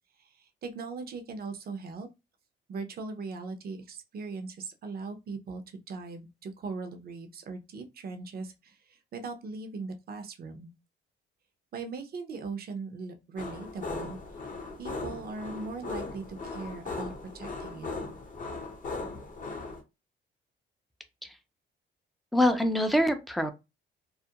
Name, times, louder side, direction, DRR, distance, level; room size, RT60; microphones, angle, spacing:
voice 1, 0.2-2.1 2.7-10.7 11.7-14.2 14.8-17.9, right 4 dB, 50° right, 0.6 m, -39 dB
sound 1, 13.4-19.8, left 3 dB, 40° left, 0.7 m, -38 dB
voice 2, 22.3-23.5, left 1 dB, ahead, 0.4 m, -24 dB
2.3 x 2.1 x 2.8 m
cardioid pair, 90°, 20 cm